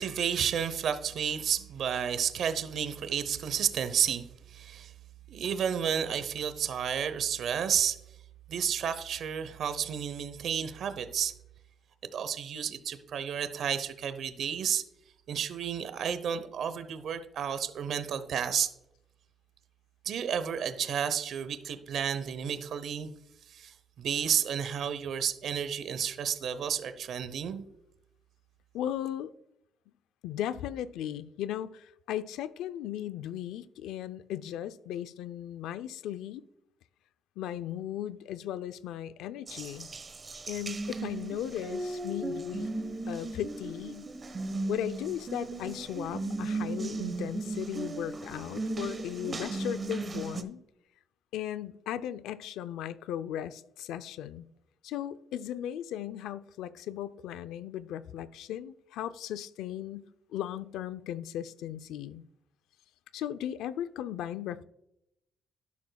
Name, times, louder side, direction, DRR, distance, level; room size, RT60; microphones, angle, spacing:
voice 1, 0.0-4.9 5.3-8.0 8.5-11.3 12.1-14.8 15.3-18.7 20.0-23.1 23.5-27.7, right 8 dB, 70° right, 11 dB, 0.9 m, -31 dB
voice 2, 28.7-29.3 30.2-36.4 37.4-39.9 40.5-42.7 43.1-44.1 44.7-50.6 51.3-54.5 54.8-62.2 63.1-64.6, left 11 dB, 90° left, 13 dB, 0.5 m, -37 dB
Water tap faucet, 39.5-50.4, right 2 dB, 35° right, 1.3 m, -36 dB
12.0 x 11.5 x 2.3 m, 0.82 s
cardioid pair, 90°, 0 cm